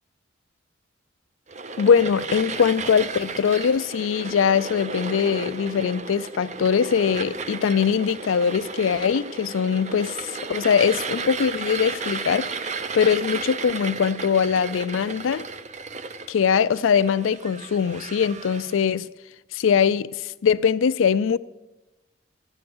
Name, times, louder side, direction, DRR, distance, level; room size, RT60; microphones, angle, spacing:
sound 1, 1.5-18.8, right 4 dB, 35° right, 0.5 m, -34 dB
voice 1, 1.8-12.5 12.9-15.4 16.3-19.1 19.5-21.4, left 7 dB, 85° left, 0.4 m, -22 dB
13.5 x 9.8 x 6.1 m
head